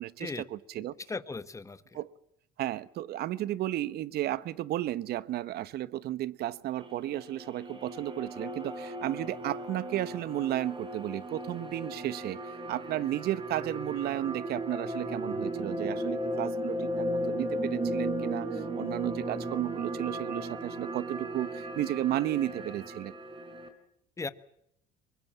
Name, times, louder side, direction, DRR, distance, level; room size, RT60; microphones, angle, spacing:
voice 1, 0.0-0.9 1.9-2.1 2.6-12.4 12.7-23.1, right 14 dB, 65° right, 1.1 m, -33 dB
voice 2, 1.0-2.0 24.2-24.3, left 4 dB, 15° left, 1.3 m, -37 dB
sound 1, 6.8-23.7, right 1 dB, 30° right, 4.7 m, -36 dB
23.5 x 21.0 x 7.4 m
supercardioid pair, 100°, 18 cm